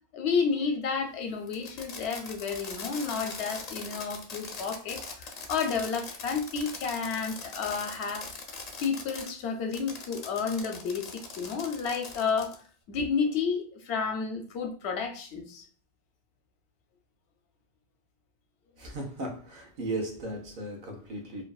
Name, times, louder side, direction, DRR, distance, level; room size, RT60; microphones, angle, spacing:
voice 1, 0.1-8.3 8.8-12.5 12.9-15.6, left 5 dB, 90° left, 0.8 m, -31 dB
Fireworks, 1.5-9.3 9.7-12.6, left 4 dB, 55° left, 0.4 m, -41 dB
voice 2, 18.8-21.4, right 2 dB, 60° right, 0.7 m, -36 dB
2.6 x 2.2 x 2.3 m
omnidirectional pair, 1.1 m